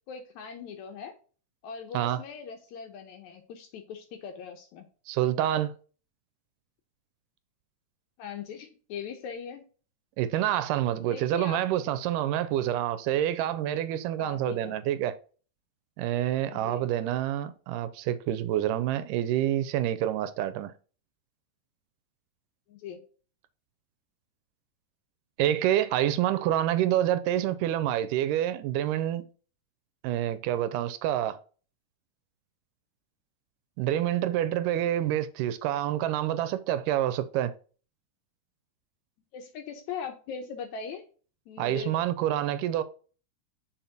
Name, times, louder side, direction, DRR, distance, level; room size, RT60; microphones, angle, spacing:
voice 1, 0.1-1.1 1.6-4.9 8.2-9.6 11.0-11.6 14.2-14.8 16.5-16.8 22.7-23.0 39.3-41.0 41.5-42.0, left 6 dB, 75° left, 1.9 m, -40 dB
voice 2, 5.1-5.7 10.2-15.1 16.0-20.7 25.4-29.3 30.0-31.4 33.8-37.5 41.6-42.8, right 12 dB, 80° right, 2.0 m, -27 dB
5.8 x 4.3 x 3.9 m
omnidirectional pair, 3.8 m